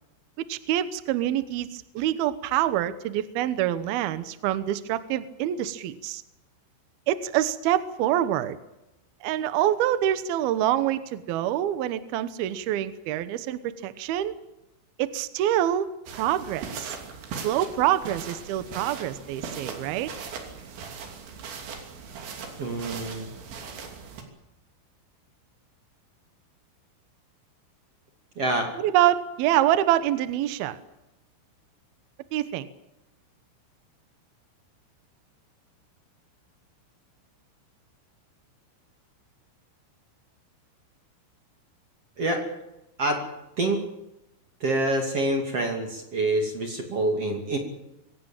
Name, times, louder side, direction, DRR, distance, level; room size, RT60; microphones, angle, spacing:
voice 1, 0.5-6.2 7.1-8.6 9.2-14.3 15.0-16.9 17.4-20.1 28.8-30.8 32.3-32.7, right 12 dB, 80° right, 12 dB, 2.2 m, -26 dB
sound 1, 16.1-24.2, right 5 dB, 65° right, 5.0 m, -39 dB
voice 2, 22.6-23.3 28.4-28.7 42.2-42.4 43.0-43.2 43.6-43.8 44.6-47.6, right 2 dB, 40° right, 3 dB, 2.7 m, -26 dB
24.5 x 17.5 x 8.9 m, 0.91 s
omnidirectional pair, 5.9 m